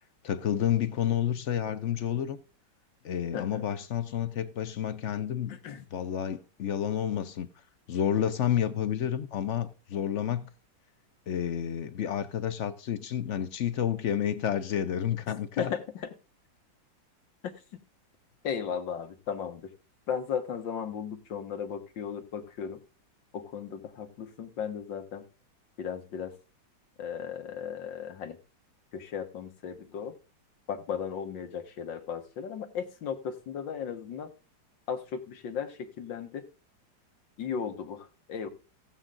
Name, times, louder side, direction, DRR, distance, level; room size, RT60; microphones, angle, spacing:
voice 1, 0.2-2.4 3.0-5.6 5.9-7.5 7.9-10.5 11.3-15.7, left 9 dB, 60° left, 0.8 m, -30 dB
voice 2, 3.3-3.6 5.5-5.8 15.6-16.1 18.4-19.7 20.1-22.8 23.3-25.2 25.8-26.3 27.0-28.4 28.9-30.2 30.7-34.3 34.9-36.4 37.4-38.5, left 7 dB, 75° left, 2.0 m, -36 dB
15.0 x 8.9 x 3.8 m
omnidirectional pair, 2.0 m